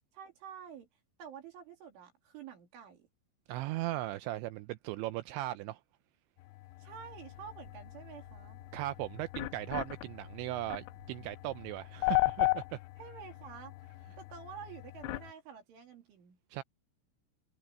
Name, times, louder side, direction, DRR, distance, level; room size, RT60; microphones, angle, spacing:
voice 1, 0.1-0.9 1.2-3.1 6.8-8.6 13.0-13.8 14.2-16.4, right 8 dB, 70° right, 5.6 m, -49 dB
voice 2, 3.5-5.8 8.7-12.8 16.5-16.6, right 16 dB, 90° right, 2.6 m, -38 dB
sound 1, 6.4-15.3, left 25 dB, 85° left, 2.7 m, -37 dB
sound 2, 7.1-13.2, right 3 dB, 35° right, 5.1 m, -62 dB
omnidirectional pair, 5.8 m